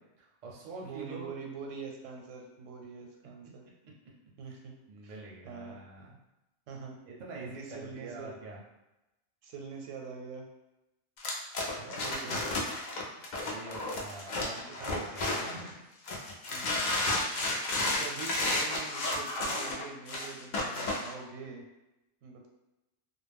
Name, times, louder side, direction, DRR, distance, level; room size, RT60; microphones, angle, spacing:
voice 1, 0.0-1.3 3.4-3.5 3.8-3.9 4.5-4.6 4.9-6.2 6.7-6.8 7.1-8.6 11.7-12.4 13.5-15.8, right 3 dB, 50° right, -3 dB, 0.5 m, -45 dB
voice 2, 0.8-3.6 4.4-4.7 5.0-5.1 5.5-5.8 6.7-7.0 7.4-8.3 9.4-10.4 12.0-12.4 16.5-16.9 18.0-21.7 22.2-22.5, right 5 dB, 85° right, 2 dB, 0.9 m, -44 dB
sound 1, 11.2-15.7 16.1-21.1, left 2 dB, 65° left, 0.4 m, -32 dB
2.2 x 2.0 x 3.4 m, 0.97 s
omnidirectional pair, 1.3 m